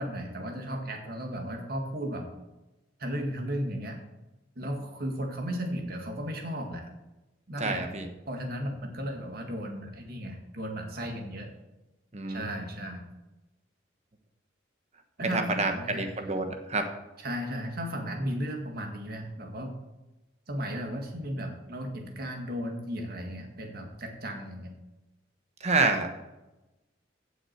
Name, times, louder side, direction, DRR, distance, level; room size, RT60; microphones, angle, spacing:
voice 1, 0.0-2.3 3.0-4.0 4.6-6.9 7.5-7.9 8.3-11.5 12.3-13.1 15.2-16.1 17.2-19.7 20.5-24.7, equal, 55° right, 3 dB, 2.0 m, -35 dB
voice 2, 7.6-8.1 12.1-12.5 15.3-16.9 25.6-26.2, right 3 dB, 35° right, 6 dB, 1.2 m, -28 dB
15.5 x 6.3 x 4.5 m, 1.0 s
head